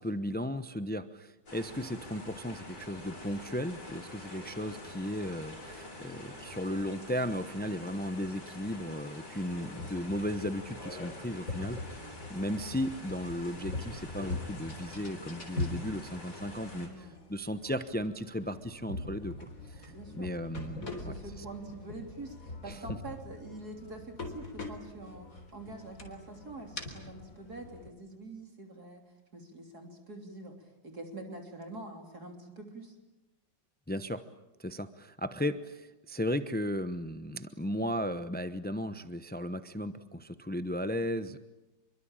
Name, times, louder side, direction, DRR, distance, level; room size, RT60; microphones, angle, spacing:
voice 1, 0.0-21.1 22.7-22.8 33.9-34.2 34.6-41.4, equal, 15° left, 11 dB, 0.3 m, -35 dB
sound 1, 1.5-16.9, left 1 dB, 60° left, 6.9 m, -46 dB
sound 2, 9.4-27.9, left 2 dB, 45° left, 4.2 m, -43 dB
voice 2, 16.8-17.2 19.9-20.6 20.9-33.0, right 2 dB, 55° right, 4 dB, 3.8 m, -45 dB
27.0 x 23.5 x 8.9 m, 1.0 s
omnidirectional pair, 2.0 m